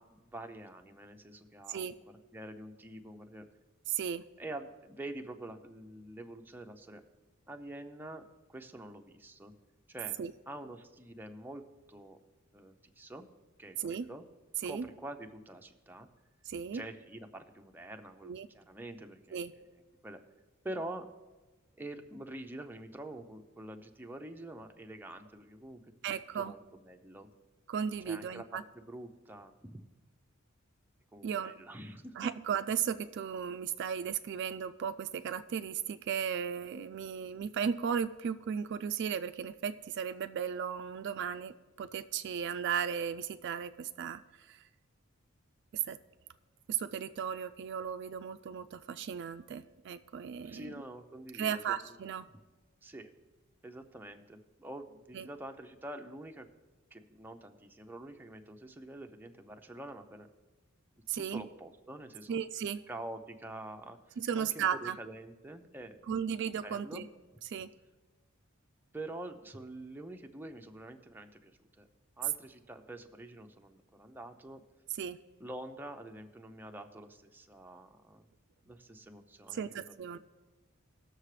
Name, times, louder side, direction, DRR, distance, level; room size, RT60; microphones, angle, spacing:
voice 1, 0.0-2.0 2.3-3.5 4.4-7.0 7.5-8.2 8.5-9.5 9.9-10.2 10.5-12.2 12.5-13.2 13.6-14.3 14.6-16.1 16.7-19.6 20.0-20.2 20.6-21.1 21.8-25.8 26.1-27.3 28.1-29.8 31.1-32.2 50.4-52.0 52.8-53.1 53.6-56.5 56.9-60.3 61.1-62.4 62.9-66.0 66.6-67.0 68.9-71.9 72.2-74.6 75.4-78.3 78.6-79.9, right 1 dB, 10° right, 4 dB, 0.6 m, -46 dB
voice 2, 3.9-4.2 10.2-10.3 13.8-14.1 14.6-14.9 16.5-16.8 18.2-18.5 19.3-19.5 26.0-26.5 27.7-28.6 31.2-31.6 32.2-44.2 44.5-44.6 45.7-46.0 46.7-50.7 51.3-52.3 55.1-55.3 61.1-61.5 62.3-62.8 64.2-65.0 66.1-67.0 67.5-67.7 75.0-75.2 79.5-80.2, right 7 dB, 55° right, 11 dB, 0.3 m, -35 dB
18.5 x 6.6 x 3.2 m, 1.2 s
head